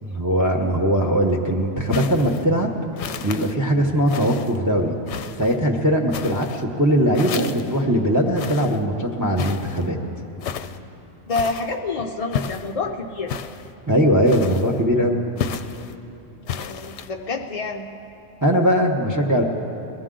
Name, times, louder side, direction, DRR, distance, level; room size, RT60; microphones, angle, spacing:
voice 1, 0.0-2.7 3.2-5.0 5.4-10.0 13.9-15.2 18.4-19.4, equal, 20° right, 1 dB, 0.7 m, -20 dB
sound 1, 1.9-2.4 3.0-3.5 4.1-4.6 5.1-5.6 6.1-6.6 7.1-7.8 8.4-8.8 9.4-9.9 10.4-10.8 11.3-11.8 12.3-12.7 13.3-13.7 14.3-14.8 15.4-15.9 16.5-17.1, left 7 dB, 70° left, 0.8 m, -32 dB
voice 2, 11.3-13.3 16.4-17.9, left 3 dB, 50° left, 1 dB, 0.4 m, -28 dB
21.5 x 15.0 x 3.8 m, 2.9 s
omnidirectional pair, 1.3 m